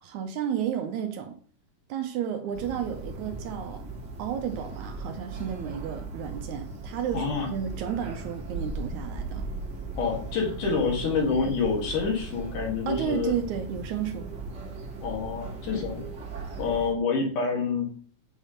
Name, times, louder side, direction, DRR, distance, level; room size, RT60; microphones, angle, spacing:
voice 1, 0.0-1.4 1.9-3.8 4.2-9.5 12.9-14.3, right 9 dB, 75° right, 2.0 m, -32 dB
sound 1, 2.5-16.9, right 3 dB, 45° right, 1.5 m, -38 dB
voice 2, 7.1-7.5 10.0-13.3 15.0-16.0 16.6-17.9, left 5 dB, 70° left, 3.2 m, -27 dB
7.2 x 3.4 x 5.6 m
omnidirectional pair, 3.8 m